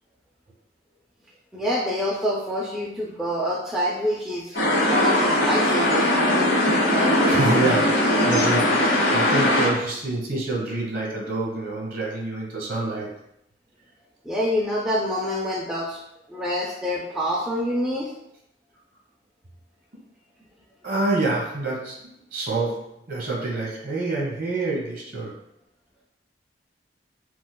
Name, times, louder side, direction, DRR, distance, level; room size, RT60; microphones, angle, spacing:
voice 1, 1.5-4.6 4.9-6.1 14.2-16.0 16.3-18.1, equal, 5° right, -4 dB, 0.3 m, -26 dB
sound 1, 4.5-9.7, left 1 dB, 70° left, 1.0 m, -20 dB
voice 2, 7.0-13.2 20.8-25.3, right 2 dB, 50° right, -3 dB, 1.1 m, -27 dB
4.6 x 2.2 x 2.2 m, 0.78 s
head